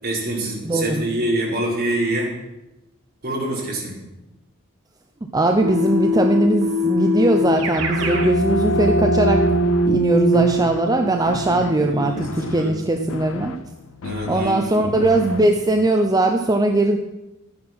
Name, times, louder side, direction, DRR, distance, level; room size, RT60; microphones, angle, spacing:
voice 1, 0.0-2.3 3.2-4.0 11.6-12.7 14.0-15.0, right 1 dB, 50° right, -4 dB, 4.4 m, -26 dB
voice 2, 0.6-1.1 5.3-9.5 9.8-13.5 14.3-17.0, right 2 dB, 20° right, 4 dB, 0.7 m, -20 dB
Keyboard (musical), 5.6-8.3, left 4 dB, 80° right, 2.0 m, -22 dB
sound 1, 7.4-13.0, right 2 dB, 55° left, 0.9 m, -22 dB
sound 2, 8.5-15.9, left 4 dB, 80° left, 0.5 m, -35 dB
12.5 x 9.6 x 6.1 m, 0.98 s
head